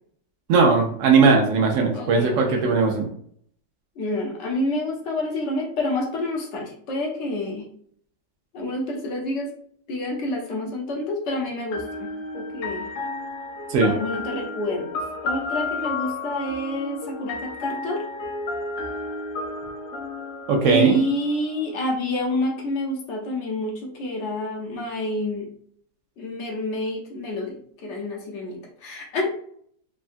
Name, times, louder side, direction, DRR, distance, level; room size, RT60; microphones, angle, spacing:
voice 1, 0.5-3.1 13.7-13.9 20.5-21.0, right 4 dB, 80° right, 2 dB, 0.7 m, -18 dB
voice 2, 1.9-2.7 4.0-7.7 8.5-9.5 9.9-12.9 13.8-18.0 20.6-25.5 26.2-27.5 27.8-29.3, left 1 dB, 55° left, -1 dB, 0.8 m, -28 dB
sound 1, 11.7-21.5, left 3 dB, 85° left, 0.7 m, -32 dB
3.5 x 2.2 x 2.5 m, 0.62 s
omnidirectional pair, 2.0 m